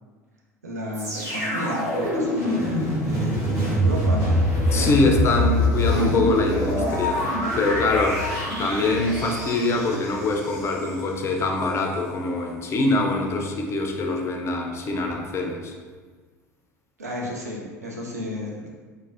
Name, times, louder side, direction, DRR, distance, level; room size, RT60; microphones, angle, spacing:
voice 1, 0.6-4.4 4.7-5.1 17.0-18.7, left 1 dB, 85° right, -1 dB, 0.4 m, -32 dB
sound 1, 0.9-11.0 11.6-11.7, left 1 dB, 45° right, 1.4 m, -25 dB
voice 2, 4.7-7.2 7.5-8.2 8.6-15.7, left 2 dB, 30° left, 2 dB, 0.4 m, -24 dB
3.1 x 2.1 x 2.5 m, 1.5 s
figure-of-eight pair, 70°, 8 cm